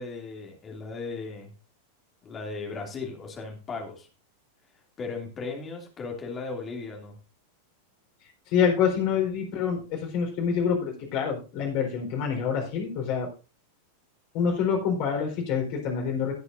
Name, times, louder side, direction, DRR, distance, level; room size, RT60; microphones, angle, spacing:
voice 1, 0.0-1.5 2.2-4.1 5.0-7.2, left 4 dB, 25° left, 1 dB, 2.7 m, -36 dB
voice 2, 8.5-13.3 14.3-16.3, left 7 dB, 45° left, 1 dB, 4.2 m, -26 dB
18.5 x 8.0 x 2.6 m, 0.32 s
figure-of-eight pair, 90°, 0 cm